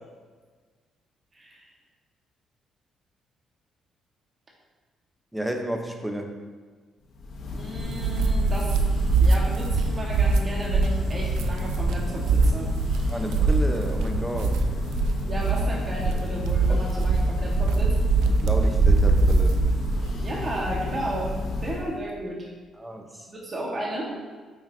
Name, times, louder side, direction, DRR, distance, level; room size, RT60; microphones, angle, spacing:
voice 1, 5.3-6.4 13.1-14.6 16.7-16.8 18.3-19.6 22.8-23.3, right 1 dB, 10° right, 3 dB, 0.9 m, -32 dB
Church bell, 7.1-22.0, left 2 dB, 65° left, 1.1 m, -32 dB
voice 2, 7.5-12.7 15.2-17.9 20.2-21.4 21.6-22.5 23.3-24.1, right 1 dB, 35° right, -3 dB, 1.6 m, -33 dB
sound 1, 7.8-20.1, right 3 dB, 85° right, 0.4 m, -23 dB
8.6 x 5.5 x 2.8 m, 1.5 s
cardioid pair, 90°, 0 cm